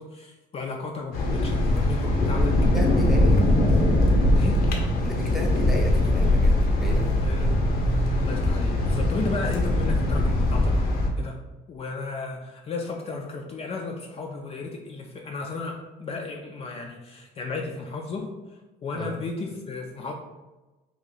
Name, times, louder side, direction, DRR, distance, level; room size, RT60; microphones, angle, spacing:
voice 1, 0.0-2.5 4.3-4.6 7.1-7.6 8.2-10.8 11.2-11.4 11.7-20.1, left 3 dB, 35° left, 1 dB, 0.4 m, -34 dB
sound 1, 1.1-11.1, left 1 dB, 65° left, 0.8 m, -21 dB
voice 2, 2.2-3.5 5.0-7.5 19.0-19.1, equal, ahead, -1 dB, 0.7 m, -34 dB
3.0 x 2.6 x 3.9 m, 1.1 s
cardioid pair, 110°, 17 cm